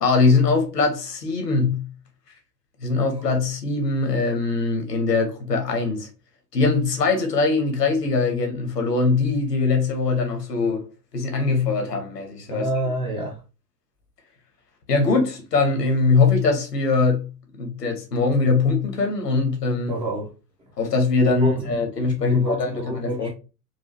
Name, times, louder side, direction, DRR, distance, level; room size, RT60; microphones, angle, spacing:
voice 1, 0.0-1.9 2.8-6.1 6.5-10.9 11.1-12.7 14.9-17.3 17.6-19.9 20.8-23.3, left 4 dB, 75° left, 1.3 m, -22 dB
voice 2, 12.5-13.4 19.9-20.3 21.4-21.7 22.3-23.3, right 1 dB, 10° right, 0.4 m, -27 dB
4.8 x 2.4 x 2.7 m
figure-of-eight pair, 95°, 49 cm